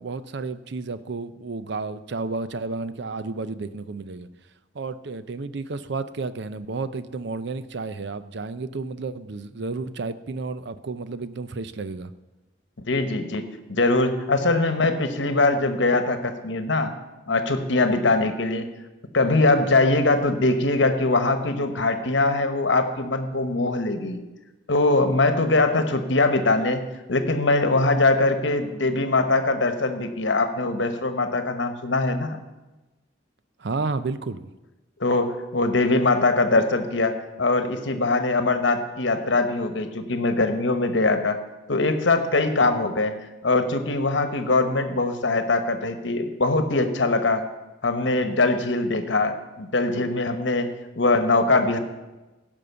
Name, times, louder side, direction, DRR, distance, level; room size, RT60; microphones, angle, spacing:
voice 1, 0.0-4.3 4.7-12.1 33.6-34.5, right 3 dB, 60° right, 13 dB, 0.6 m, -31 dB
voice 2, 12.8-16.9 17.3-18.7 19.1-24.2 24.7-26.8 27.1-32.4 35.0-41.4 41.7-43.1 43.4-47.4 47.8-51.8, left 2 dB, 65° left, 9 dB, 1.1 m, -22 dB
16.0 x 5.4 x 6.8 m, 1.1 s
head